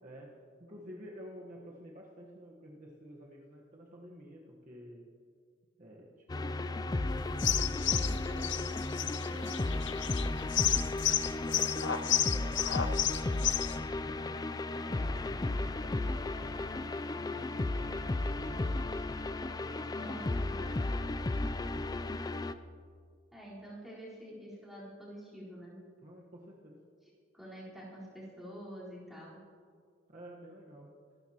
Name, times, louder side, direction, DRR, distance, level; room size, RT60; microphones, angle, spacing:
voice 1, 0.0-5.1 5.8-10.7 11.4-18.9 19.5-22.0 26.0-26.8 30.1-31.0, equal, 35° right, -2 dB, 1.3 m, -51 dB
sound 1, 6.3-22.5, left 2 dB, 20° left, 0.3 m, -34 dB
sound 2, 7.3-13.8, left 11 dB, 55° left, 0.6 m, -31 dB
voice 2, 20.0-20.6 23.3-25.8 27.3-29.4, equal, ahead, -8 dB, 4.2 m, -47 dB
25.5 x 12.5 x 3.0 m, 2.1 s
head